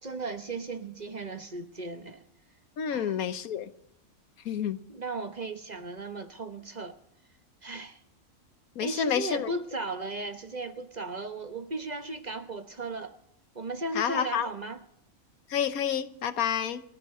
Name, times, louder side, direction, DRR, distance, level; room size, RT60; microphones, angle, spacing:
voice 1, 0.0-2.2 2.9-3.2 4.9-7.0 7.6-8.0 8.8-13.1 13.5-14.8, right 2 dB, 35° right, 1.0 m, -36 dB
voice 2, 2.8-3.7 4.4-4.8 8.7-9.5 13.9-14.5 15.5-16.8, left 8 dB, 90° left, 1.4 m, -29 dB
29.0 x 12.5 x 3.7 m
omnidirectional pair, 1.5 m